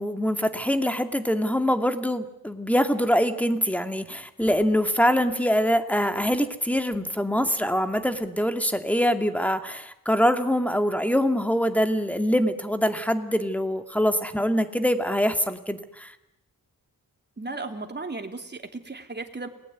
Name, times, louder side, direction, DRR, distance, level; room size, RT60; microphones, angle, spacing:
voice 1, 0.0-16.1, equal, 5° left, 7 dB, 2.4 m, -24 dB
voice 2, 17.4-19.5, right 3 dB, 30° right, 4 dB, 3.2 m, -35 dB
30.0 x 20.0 x 9.4 m, 0.85 s
wide cardioid pair, 80°, 35 cm